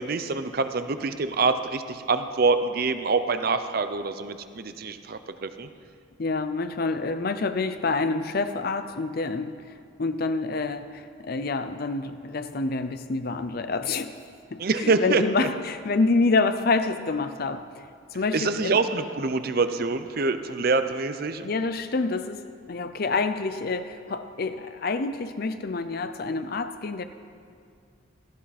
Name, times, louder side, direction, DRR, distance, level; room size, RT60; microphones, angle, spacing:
voice 1, 0.0-5.7 14.6-15.2 18.3-21.4, right 4 dB, 50° right, 10 dB, 0.6 m, -25 dB
voice 2, 6.2-14.2 14.5-17.8 18.1-18.8 21.4-27.1, left 3 dB, 50° left, 10 dB, 0.6 m, -27 dB
17.0 x 13.5 x 4.2 m, 2.2 s
head